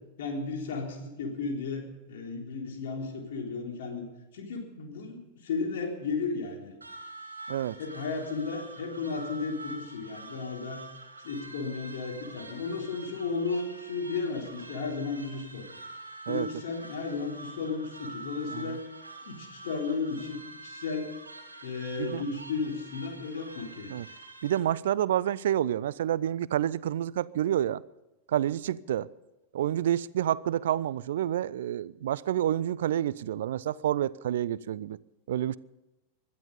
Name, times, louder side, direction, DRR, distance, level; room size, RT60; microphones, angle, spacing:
voice 1, 0.2-4.1 4.3-6.7 7.8-10.8 11.2-15.7 16.3-18.8 19.3-21.1 21.6-23.9, left 4 dB, 55° left, 3.7 m, -34 dB
sound 1, 6.8-24.6, right 2 dB, 80° right, 2.2 m, -46 dB
voice 2, 24.4-27.8 28.3-29.1 29.5-35.0 35.3-35.6, right 11 dB, 60° right, 0.5 m, -28 dB
21.0 x 12.5 x 5.4 m
figure-of-eight pair, 90°, 0 cm